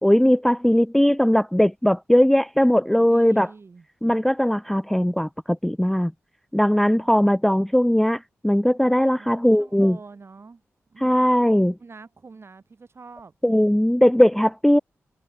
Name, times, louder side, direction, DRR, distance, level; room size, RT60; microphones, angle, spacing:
voice 1, 0.0-3.5 4.0-6.1 6.5-10.0 11.0-11.7 13.4-14.8, equal, 5° left, 0.3 m, -19 dB
voice 2, 2.9-3.9 7.0-7.2 9.1-10.6 10.9-11.5 11.8-13.3, right 4 dB, 50° right, 2.8 m, -45 dB
cardioid pair, 50°, 5 cm